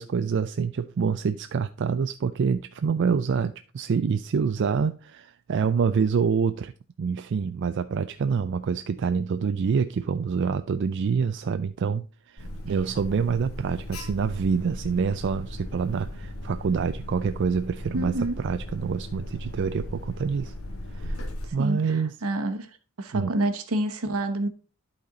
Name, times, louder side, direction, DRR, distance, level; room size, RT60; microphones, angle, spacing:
voice 1, 0.0-6.7 7.0-20.5 20.9-21.2 21.5-22.1 23.1-23.3, right 6 dB, 55° right, 0.4 m, -26 dB
Alarm, 12.4-21.5, left 1 dB, 75° left, 1.5 m, -37 dB
voice 2, 17.9-18.4 21.4-22.7 23.0-24.5, right 1 dB, 80° right, 1.0 m, -28 dB
11.5 x 4.2 x 3.9 m
head